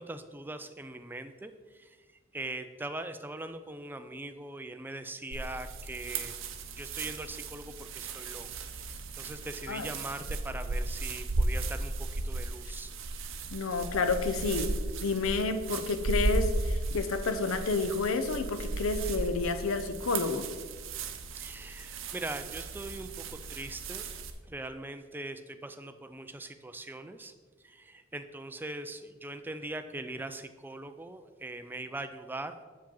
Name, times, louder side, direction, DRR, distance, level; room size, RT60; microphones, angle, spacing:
voice 1, 0.0-2.0 2.3-8.5 9.1-12.9 21.4-24.1 24.4-27.3 27.6-32.6, right 2 dB, 10° right, 9 dB, 0.3 m, -41 dB
sound 1, 5.3-24.3, right 2 dB, 65° right, 0.7 m, -35 dB
voice 2, 13.5-20.5, left 4 dB, 85° left, 10 dB, 0.6 m, -30 dB
7.5 x 7.2 x 3.8 m, 1.4 s
head